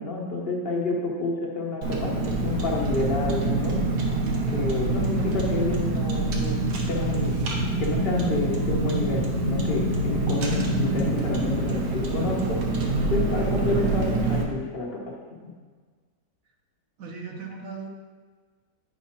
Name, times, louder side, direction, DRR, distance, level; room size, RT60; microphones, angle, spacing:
voice 1, 0.0-3.9 4.5-6.6 6.9-12.6 13.1-15.2 15.4-15.5, left 2 dB, 40° left, -1 dB, 1.1 m, -29 dB
Car, 1.8-14.4, right 2 dB, 80° right, 1.6 m, -25 dB
voice 2, 17.0-17.9, right 4 dB, 60° right, 1 dB, 1.2 m, -37 dB
8.5 x 4.8 x 4.2 m, 1.5 s
omnidirectional pair, 1.8 m